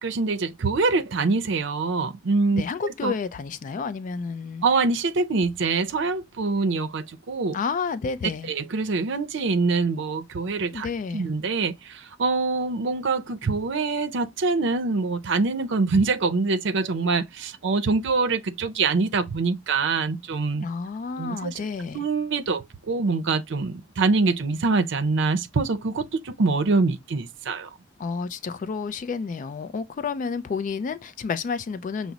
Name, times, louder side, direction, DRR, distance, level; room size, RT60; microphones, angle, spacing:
voice 1, 0.0-2.6 3.0-3.1 4.6-7.6 8.5-20.6 21.2-21.6 21.9-27.7, right 3 dB, 65° right, 0.5 m, -24 dB
voice 2, 2.5-4.6 7.5-8.5 10.7-11.2 20.6-22.0 28.0-32.1, left 5 dB, 40° left, 0.3 m, -30 dB
5.9 x 2.0 x 3.9 m
head